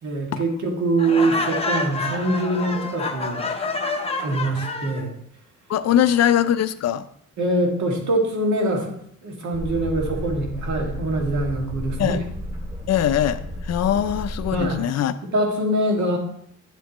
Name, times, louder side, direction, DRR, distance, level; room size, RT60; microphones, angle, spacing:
voice 1, 0.0-3.4 4.2-5.1 7.4-8.9 9.2-12.2 14.5-14.8 15.2-16.2, right 1 dB, 70° right, 0 dB, 2.2 m, -23 dB
Laughter, 1.0-5.0, left 3 dB, 20° left, 0.7 m, -28 dB
voice 2, 5.7-7.0 12.0-12.2 12.9-15.1, left 10 dB, 60° left, 13 dB, 0.5 m, -21 dB
Boat Water vehicle, 9.5-14.7, left 1 dB, 25° right, 2.1 m, -32 dB
10.5 x 7.3 x 3.0 m, 0.69 s
wide cardioid pair, 170°, 30 cm